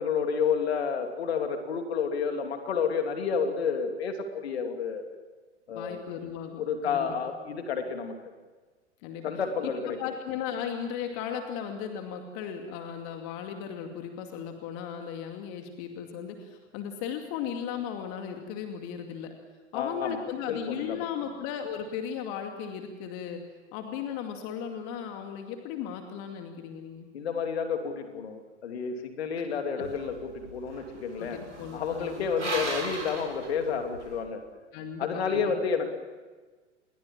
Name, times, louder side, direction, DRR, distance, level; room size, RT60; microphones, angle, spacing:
voice 1, 0.0-5.0 5.7-6.0 6.6-8.1 9.2-10.1 19.7-20.2 20.5-21.0 27.1-31.4 31.7-34.4 35.0-35.9, left 6 dB, 60° left, 5 dB, 3.1 m, -30 dB
voice 2, 5.7-7.1 7.5-7.6 9.0-9.3 9.6-9.7 10.0-19.3 19.7-23.4 23.7-27.1 29.4-29.5 31.2-32.3 34.7-35.4, left 8 dB, 40° left, 5 dB, 2.5 m, -36 dB
sound 1, 29.8-34.2, right 3 dB, 80° right, 7.2 m, -38 dB
28.5 x 21.5 x 7.4 m, 1.4 s
figure-of-eight pair, 95°, 35 cm